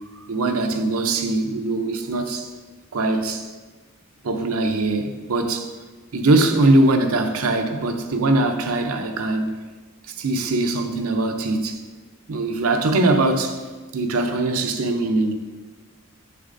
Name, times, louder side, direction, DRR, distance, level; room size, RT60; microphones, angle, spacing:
voice 1, 0.3-2.5 2.9-3.5 4.2-5.7 6.1-9.5 10.1-11.8 12.3-13.6 13.9-15.3, right 2 dB, 85° right, 0.7 m, -21 dB
7.4 x 6.7 x 2.6 m
head